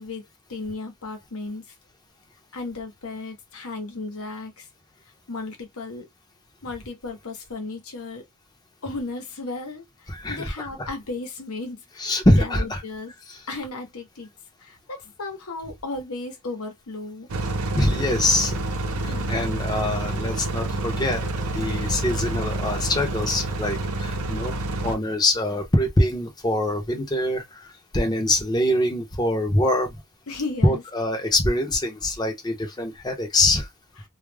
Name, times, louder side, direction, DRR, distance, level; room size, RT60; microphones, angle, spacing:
voice 1, 0.0-1.6 2.5-4.7 5.3-6.1 6.6-8.2 8.8-12.1 12.4-13.1 13.5-14.3 14.6-17.3 18.9-19.6 30.3-30.8, left 3 dB, 85° left, 0.9 m, -35 dB
voice 2, 10.1-10.7 12.0-12.8 13.3-13.4 17.8-18.6 19.0-21.3 21.5-24.6 24.8-27.7 27.9-29.9 30.6-33.7, left 1 dB, 20° left, 0.7 m, -24 dB
sound 1, 17.3-24.9, right 2 dB, 90° right, 0.6 m, -28 dB
2.3 x 2.1 x 3.3 m
head